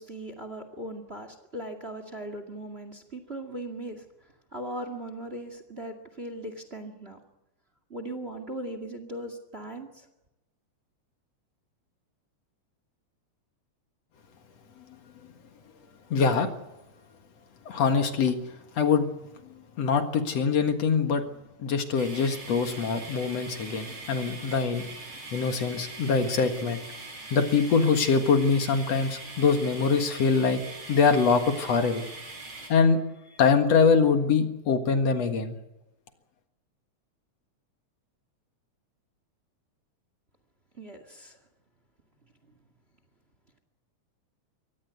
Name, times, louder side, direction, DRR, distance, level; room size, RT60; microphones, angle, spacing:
voice 1, 0.0-7.2 7.9-10.1 40.7-41.4 42.4-42.5, right 1 dB, 25° right, 8 dB, 2.1 m, -39 dB
voice 2, 16.1-16.5 17.7-18.4 18.7-19.1 19.5-21.2 21.6-24.9 25.3-26.8 27.3-30.6 30.9-32.0 32.7-33.0 33.4-35.6, left 5 dB, 60° left, 6 dB, 2.8 m, -23 dB
sound 1, 22.0-32.7, right 3 dB, 40° right, 8.4 m, -42 dB
24.5 x 18.5 x 8.2 m, 0.95 s
omnidirectional pair, 3.3 m